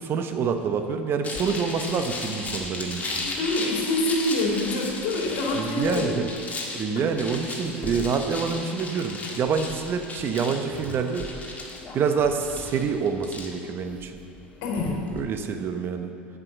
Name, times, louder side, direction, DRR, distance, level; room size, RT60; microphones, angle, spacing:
voice 1, 0.0-3.3 5.5-6.3 6.7-11.3 11.9-14.1 15.1-16.1, right 6 dB, 40° right, 7 dB, 0.9 m, -27 dB
sound 1, 1.2-15.2, left 2 dB, 25° left, 1.8 m, -35 dB
voice 2, 3.2-6.1 6.5-6.6 7.0-7.1 14.6-14.9, left 2 dB, 60° left, -2 dB, 2.6 m, -26 dB
7.5 x 6.2 x 7.9 m, 2.4 s
hypercardioid pair, 85°, 6 cm